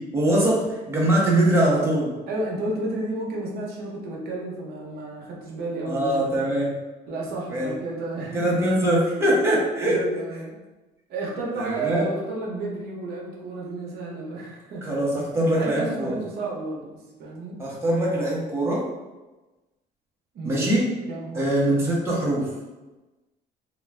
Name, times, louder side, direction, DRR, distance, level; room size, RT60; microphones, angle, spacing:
voice 1, 0.1-2.1 5.9-6.7 7.5-7.7 8.3-10.0 11.6-12.1 14.8-16.1 17.6-18.9 20.4-20.9 21.4-22.5, right 1 dB, 15° right, -5 dB, 0.8 m, -22 dB
voice 2, 2.3-6.5 7.1-8.6 9.9-10.6 11.1-14.8 15.6-17.6 20.3-20.7 21.1-21.5, right 2 dB, 70° right, -3 dB, 0.8 m, -32 dB
2.4 x 2.2 x 3.2 m, 1.1 s
cardioid pair, 110°, 17 cm